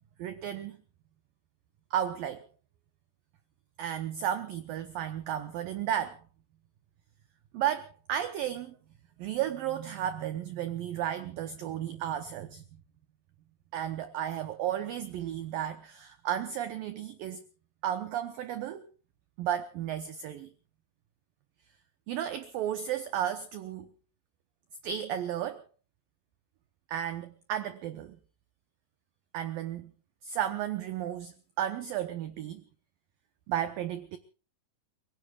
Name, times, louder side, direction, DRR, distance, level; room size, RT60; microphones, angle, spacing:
voice 1, 0.2-0.8 1.9-2.5 3.8-6.2 7.5-8.8 9.2-12.6 13.7-17.4 17.8-18.9 19.4-20.5 22.1-23.9 24.8-25.6 26.9-28.2 29.3-29.9 30.2-32.6 33.5-34.2, right 10 dB, 85° right, 2.0 m, -33 dB
29.5 x 17.0 x 2.4 m
omnidirectional pair, 5.3 m